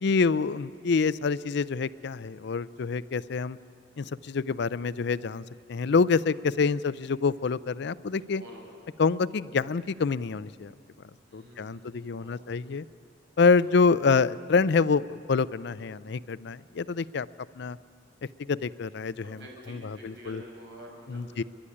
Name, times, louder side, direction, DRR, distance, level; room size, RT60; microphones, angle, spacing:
voice 1, 0.0-3.6 4.0-5.4 5.7-8.4 9.0-10.7 11.3-12.9 13.4-17.3 17.6-17.8 18.5-19.4 19.7-20.4 21.1-21.4, left 4 dB, 65° left, 17 dB, 0.5 m, -26 dB
voice 2, 8.4-9.0 11.3-12.5 13.6-13.7 19.2-21.5, right 1 dB, 70° right, -1 dB, 6.3 m, -49 dB
30.0 x 11.5 x 9.8 m, 2.3 s
head